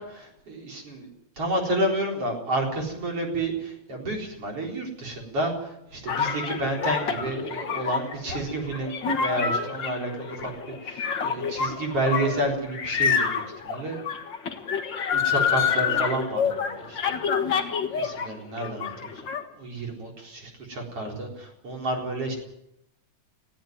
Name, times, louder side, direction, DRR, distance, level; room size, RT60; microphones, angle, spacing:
voice 1, 0.1-1.1 1.4-10.5 10.8-14.0 15.1-17.2 17.4-17.6 17.8-19.2 19.5-22.3, right 1 dB, 35° right, 1 dB, 4.7 m, -30 dB
sound 1, 6.1-18.3 18.6-19.4, left 6 dB, 55° left, 1.3 m, -27 dB
20.5 x 15.5 x 9.2 m, 0.81 s
omnidirectional pair, 4.7 m